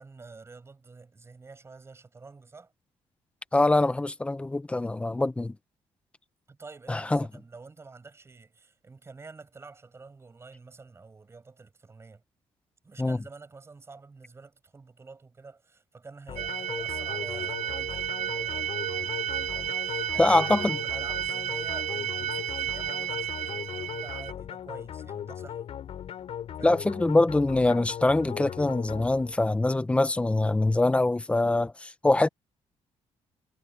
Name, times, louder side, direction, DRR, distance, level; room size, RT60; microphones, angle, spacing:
voice 1, 0.0-2.7 6.5-12.2 12.8-25.6 26.6-26.9, right 4 dB, 20° right, 8.0 m, -48 dB
voice 2, 3.5-5.5 6.9-7.3 13.0-13.2 20.2-20.8 26.6-32.3, left 2 dB, 10° left, 0.8 m, -24 dB
sound 1, 16.3-29.6, left 9 dB, 60° left, 5.3 m, -39 dB
sound 2, 16.4-24.3, right 10 dB, 85° right, 1.0 m, -32 dB
cardioid pair, 155°, 12 cm